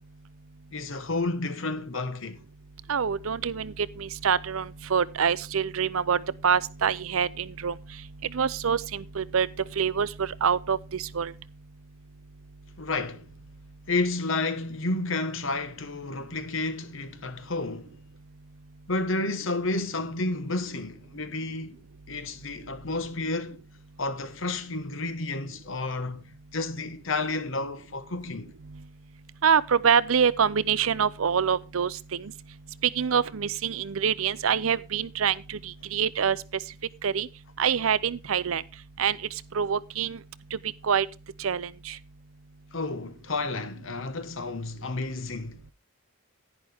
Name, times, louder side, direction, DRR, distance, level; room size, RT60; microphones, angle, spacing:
voice 1, 0.7-2.4 12.8-13.2 13.9-17.9 18.9-21.8 22.1-23.6 24.0-26.2 26.5-28.5 42.7-45.6, left 2 dB, 60° left, 1.2 m, -31 dB
voice 2, 2.9-7.7 8.3-9.5 9.8-11.3 29.4-32.3 33.0-36.4 37.0-37.3 37.6-38.6 39.0-39.2 39.5-40.2 40.9-41.1 41.4-42.0, right 7 dB, 75° right, 0.6 m, -25 dB
11.0 x 10.0 x 3.5 m
head